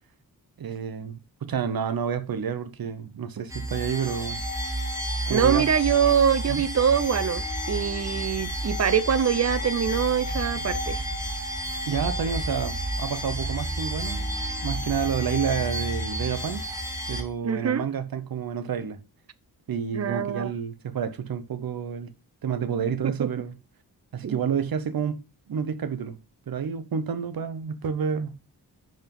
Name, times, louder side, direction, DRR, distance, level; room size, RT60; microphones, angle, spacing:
voice 1, 0.6-4.4 5.3-5.7 6.5-6.6 11.9-14.3 14.6-16.7 17.1-19.0 19.7-22.1 22.4-23.6 24.1-26.2 26.5-28.6, right 7 dB, 65° right, 0.9 m, -29 dB
sound 1, 3.5-17.2, right 1 dB, 10° right, 1.7 m, -30 dB
voice 2, 5.3-11.0 17.4-17.8 19.9-20.5 23.2-23.3 24.2-24.4, right 8 dB, 45° right, 0.5 m, -24 dB
5.3 x 5.3 x 5.3 m
wide cardioid pair, 100°, 39 cm